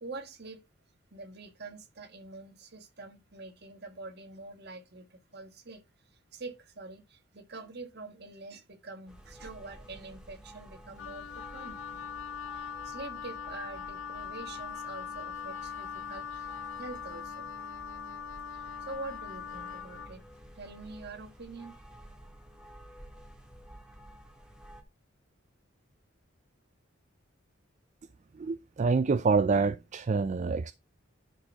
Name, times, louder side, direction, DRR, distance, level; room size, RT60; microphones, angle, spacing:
voice 1, 0.0-0.6 1.1-5.8 6.3-12.1 12.5-17.5 18.5-20.2 20.5-21.7, right 3 dB, 55° right, 1.6 m, -45 dB
sound 1, 9.1-24.8, right 1 dB, 5° right, 1.7 m, -52 dB
Wind instrument woodwind instrument, 11.0-20.1, left 7 dB, 85° left, 0.9 m, -41 dB
voice 2, 28.3-30.7, right 4 dB, 35° right, 0.3 m, -27 dB
10.0 x 4.3 x 4.5 m
head